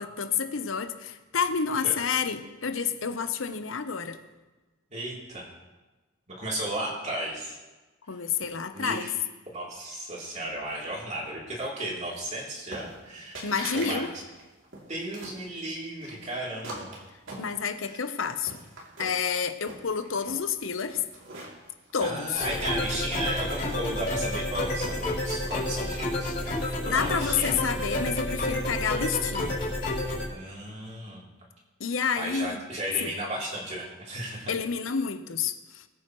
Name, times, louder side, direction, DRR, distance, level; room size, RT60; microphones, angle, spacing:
voice 1, 0.0-4.2 8.1-9.1 13.4-14.1 17.4-18.6 19.0-21.0 21.9-22.5 26.6-29.5 31.8-32.6 33.0-33.1 34.5-35.8, left 6 dB, 85° left, 9 dB, 0.9 m, -29 dB
voice 2, 4.9-5.5 6.3-7.6 8.7-9.1 9.5-13.5 13.7-14.2 14.9-16.9 17.8-18.0 22.0-26.3 26.8-27.5 30.3-31.3 32.1-34.5, right 1 dB, 35° right, -4 dB, 3.3 m, -34 dB
sound 1, 12.7-13.1 13.3-14.0 14.3-15.4 16.0-17.9 18.3-19.3 19.6-20.4 20.9-22.9 23.2-25.2, right 2 dB, 80° right, 2.9 m, -42 dB
sound 2, 22.3-30.2, left 1 dB, 50° left, 4.2 m, -30 dB
21.0 x 9.1 x 3.1 m, 1.2 s
head